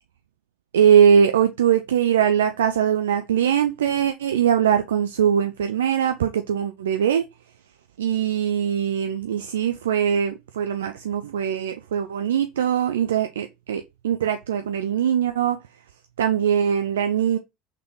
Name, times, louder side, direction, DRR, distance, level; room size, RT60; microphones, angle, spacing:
voice 1, 0.7-7.2 8.0-15.6 16.2-17.4, right 8 dB, 80° right, 0.4 m, -21 dB
3.7 x 3.4 x 3.1 m
hypercardioid pair, 75°, 0 cm